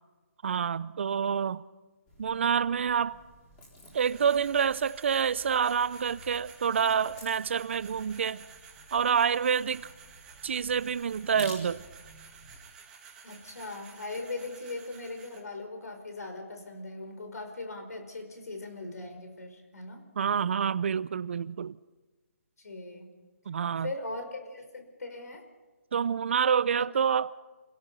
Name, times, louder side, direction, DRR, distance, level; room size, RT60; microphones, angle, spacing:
voice 1, 0.4-1.6 2.2-3.2 3.9-8.4 8.9-9.9 10.4-11.8 20.2-21.8 23.5-23.9 25.9-27.3, right 7 dB, 45° right, 0.6 m, -27 dB
sound 1, 2.1-12.6, left 1 dB, 15° left, 3.7 m, -52 dB
sound 2, 3.9-15.4, right 6 dB, 10° right, 1.8 m, -52 dB
voice 2, 13.2-20.0 22.6-23.1 23.8-25.4 26.7-26.8, left 2 dB, 80° left, 5.0 m, -39 dB
28.5 x 17.5 x 5.4 m
hypercardioid pair, 165°, 9 cm